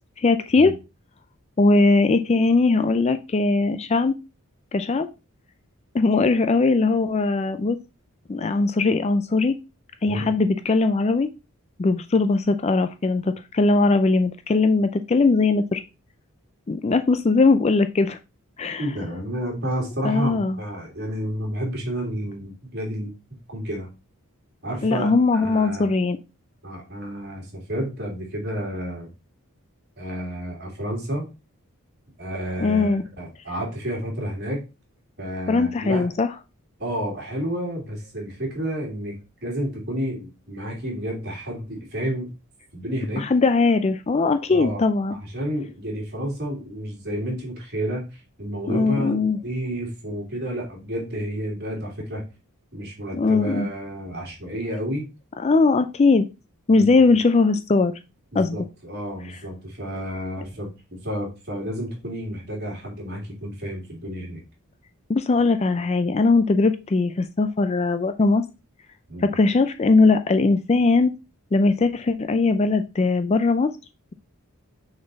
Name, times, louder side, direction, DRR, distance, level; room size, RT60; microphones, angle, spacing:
voice 1, 0.2-0.7 1.6-4.1 4.7-5.1 5.9-7.8 8.3-9.5 10.0-11.3 11.8-15.8 16.7-18.2 18.6-18.8 20.0-20.6 24.8-26.2 32.6-33.0 35.5-36.3 43.2-45.1 48.7-49.4 53.1-53.7 55.4-56.3 56.7-57.9 58.3-58.6 65.1-68.4 69.2-71.1 71.5-73.7, left 3 dB, 30° left, 0.4 m, -20 dB
voice 2, 18.8-23.1 23.5-23.9 24.6-25.1 25.4-25.9 26.6-29.1 30.0-31.3 32.2-32.9 33.2-34.6 35.2-36.1 36.8-42.3 42.7-43.3 44.5-44.8 45.1-52.2 52.7-55.1 56.7-56.9 58.3-64.4 69.1-69.3, equal, 45° right, 2.8 m, -30 dB
6.4 x 4.1 x 4.0 m
head